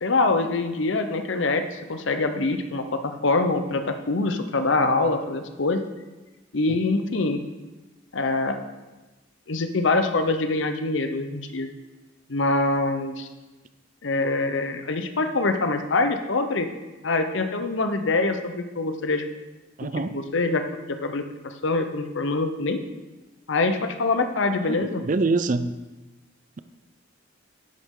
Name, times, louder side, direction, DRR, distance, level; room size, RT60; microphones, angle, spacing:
voice 1, 0.0-5.8 6.5-7.4 8.1-8.6 9.5-11.7 12.3-13.3 14.0-16.7 17.0-19.2 20.1-22.8 23.5-25.0, left 3 dB, 65° left, 0.8 m, -24 dB
voice 2, 19.8-20.2 24.6-25.7, right 3 dB, 40° right, 0.4 m, -25 dB
10.5 x 8.2 x 3.8 m
head